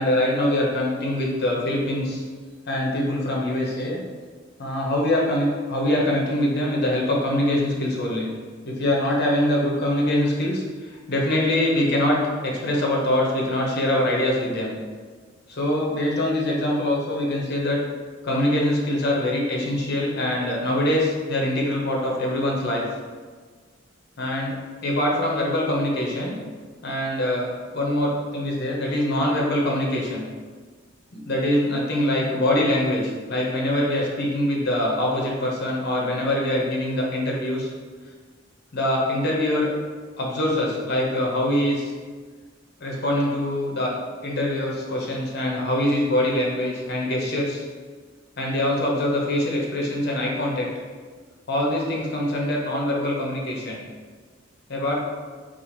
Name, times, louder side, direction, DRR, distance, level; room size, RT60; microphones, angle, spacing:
voice 1, 0.0-2.2 2.7-4.0 4.6-8.3 8.6-14.7 15.5-17.8 18.2-22.8 24.2-26.3 26.8-30.2 31.2-37.7 38.7-39.7 40.2-41.9 42.8-44.0 44.2-47.6 48.4-50.7 51.5-53.8 54.7-55.0, left 1 dB, 55° left, -2 dB, 0.7 m, -24 dB
2.8 x 2.4 x 4.2 m, 1.5 s
head